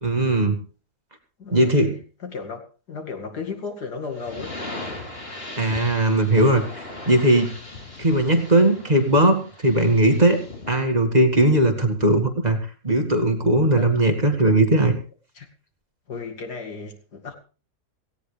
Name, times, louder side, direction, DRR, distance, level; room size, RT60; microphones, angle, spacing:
voice 1, 0.0-0.6 1.5-2.0 5.6-6.6 7.1-7.5 8.0-10.4 10.7-12.6 12.8-15.0, right 1 dB, 25° right, 2.1 m, -18 dB
voice 2, 1.4-1.8 2.2-2.6 2.9-4.6 13.8-14.0 15.3-15.5 16.1-17.3, left 4 dB, 85° left, 2.9 m, -34 dB
sound 1, 4.1-10.8, left 2 dB, 35° left, 4.1 m, -38 dB
17.5 x 17.0 x 3.4 m
omnidirectional pair, 1.7 m